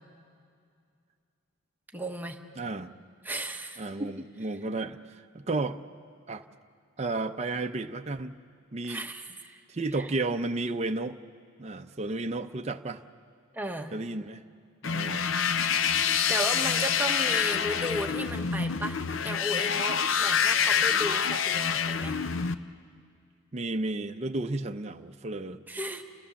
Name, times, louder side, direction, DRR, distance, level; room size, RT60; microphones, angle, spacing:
voice 1, 1.9-2.4 3.2-4.1 8.8-9.6 10.0-10.1 13.5-13.9 16.3-22.2 25.7-26.0, right 1 dB, 10° right, 4 dB, 1.1 m, -35 dB
voice 2, 2.6-2.9 3.8-5.8 6.3-6.4 7.0-8.4 8.7-9.0 9.7-11.2 11.6-13.0 13.9-14.4 14.8-15.3 23.5-25.6, right 2 dB, 30° right, 5 dB, 0.6 m, -32 dB
sound 1, 14.8-22.6, left 7 dB, 65° left, 0.6 m, -27 dB
30.0 x 15.0 x 7.0 m, 2.3 s
head